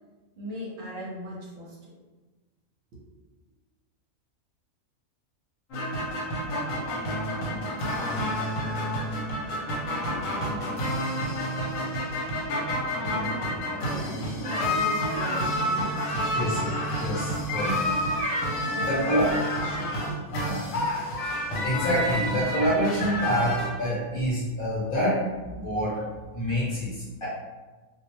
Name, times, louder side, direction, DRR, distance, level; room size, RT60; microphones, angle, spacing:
voice 1, 0.4-1.9 13.0-16.8 18.7-20.2, equal, 65° right, -5 dB, 0.8 m, -39 dB
sound 1, 5.7-23.7, equal, 75° left, 1.0 m, -29 dB
voice 2, 17.0-17.8 18.8-19.2 20.3-20.7 21.6-26.1 26.3-27.3, equal, 45° left, -8 dB, 0.9 m, -27 dB
2.3 x 2.0 x 2.9 m, 1.2 s
omnidirectional pair, 1.4 m